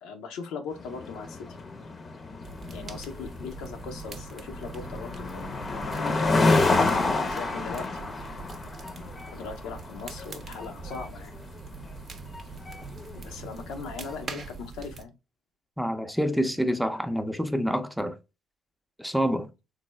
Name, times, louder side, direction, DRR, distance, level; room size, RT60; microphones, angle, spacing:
voice 1, 0.0-1.5 2.7-6.7 7.3-8.0 9.3-11.3 13.1-15.1, left 5 dB, 80° left, 0.6 m, -39 dB
sound 1, 0.8-14.3, left 3 dB, 40° left, 0.6 m, -29 dB
sound 2, 2.4-15.0, right 4 dB, 50° right, 0.6 m, -43 dB
voice 2, 15.8-18.2 19.0-19.5, equal, ahead, 0.5 m, -27 dB
3.2 x 2.1 x 3.2 m
supercardioid pair, 60°, 0 cm